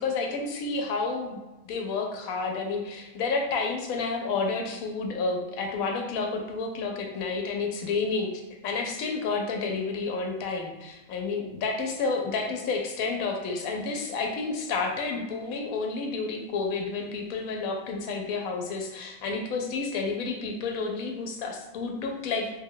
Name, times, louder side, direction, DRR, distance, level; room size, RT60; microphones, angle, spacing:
voice 1, 0.0-8.3 8.6-22.5, left 4 dB, 85° left, 2 dB, 1.0 m, -30 dB
3.0 x 2.2 x 3.6 m, 1.0 s
omnidirectional pair, 1.5 m